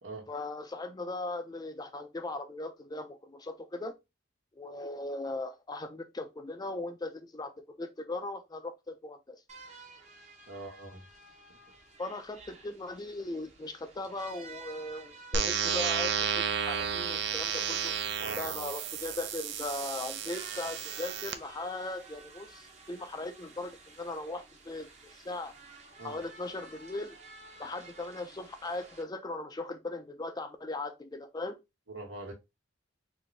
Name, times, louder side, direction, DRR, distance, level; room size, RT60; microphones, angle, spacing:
voice 1, 0.3-3.9 4.6-7.5 7.8-9.4 12.0-17.9 18.4-24.9 25.2-25.5 26.0-27.2 27.6-31.6, left 2 dB, 20° left, 0.4 m, -38 dB
sound 1, 9.5-29.0, right 3 dB, 35° right, 0.9 m, -52 dB
voice 2, 10.5-11.0 18.2-18.5 26.0-26.2 31.9-32.3, right 2 dB, 80° right, 1.3 m, -42 dB
sound 2, 15.3-21.3, right 7 dB, 60° right, 0.5 m, -32 dB
4.1 x 2.6 x 3.2 m
head